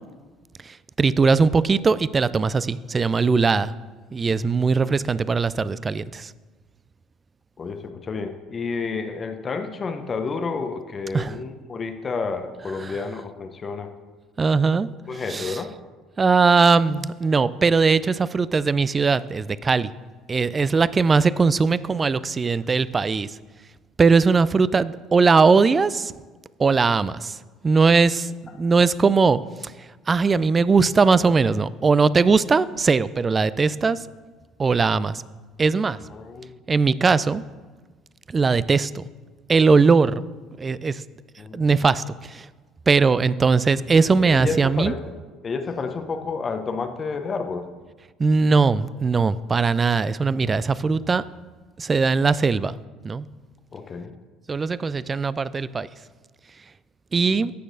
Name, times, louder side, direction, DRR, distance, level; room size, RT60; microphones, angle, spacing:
voice 1, 0.6-3.7 4.1-6.3 11.1-11.3 14.4-14.9 15.3-15.6 16.2-19.9 20.3-23.3 24.0-26.1 26.6-27.4 27.6-28.3 28.6-29.7 30.1-34.0 34.6-35.2 35.6-36.0 36.7-37.4 38.3-39.1 39.5-40.2 40.6-41.0 41.5-42.5 42.9-44.9 48.2-51.2 51.8-52.7 53.0-53.3 54.5-55.9 57.1-57.5, right 4 dB, 30° right, 18 dB, 0.3 m, -20 dB
voice 2, 7.6-13.9 15.1-15.7 20.6-20.7 36.1-36.6 41.4-41.7 44.3-45.0 45.4-47.7 53.7-54.1 57.1-57.5, left 4 dB, 35° left, 6 dB, 0.7 m, -30 dB
14.5 x 6.3 x 2.6 m, 1.3 s
hypercardioid pair, 60°, 0 cm